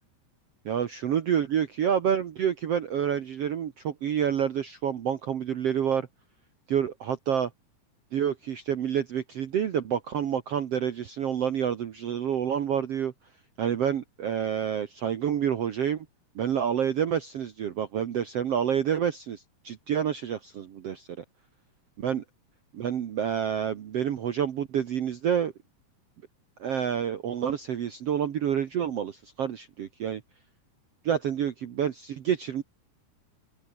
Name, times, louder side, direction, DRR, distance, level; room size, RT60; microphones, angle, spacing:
voice 1, 0.6-6.1 6.7-7.5 8.1-13.1 13.6-16.1 16.3-21.2 22.0-22.2 22.7-25.5 26.6-30.2 31.0-32.6, right 8 dB, 80° right, 1.3 m, -28 dB
open air
omnidirectional pair, 4.8 m